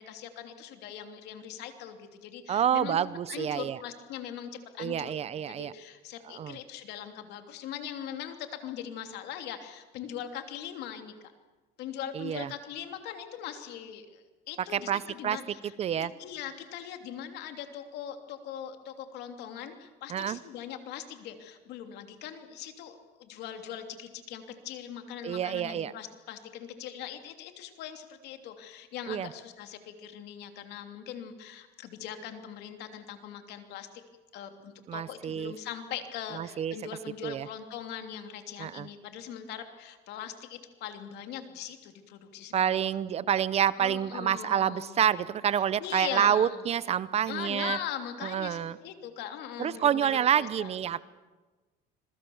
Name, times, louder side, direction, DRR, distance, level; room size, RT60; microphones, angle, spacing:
voice 1, 0.0-3.0 3.3-5.1 5.5-11.3 11.8-15.7 16.2-33.9 34.3-43.0 43.8-45.0 45.8-46.6 47.3-50.1 50.4-51.0, left 9 dB, 65° left, 6 dB, 2.9 m, -41 dB
voice 2, 2.5-3.8 4.8-5.7 6.3-6.6 12.1-12.5 14.7-15.4 15.8-16.1 20.1-20.4 25.2-25.9 29.1-29.3 34.9-35.5 36.3-36.7 37.2-37.5 38.6-38.9 42.5-47.8 48.2-48.8 49.6-51.0, right 9 dB, 35° right, 18 dB, 0.7 m, -28 dB
26.5 x 22.0 x 7.1 m, 1.2 s
cardioid pair, 140°, 18 cm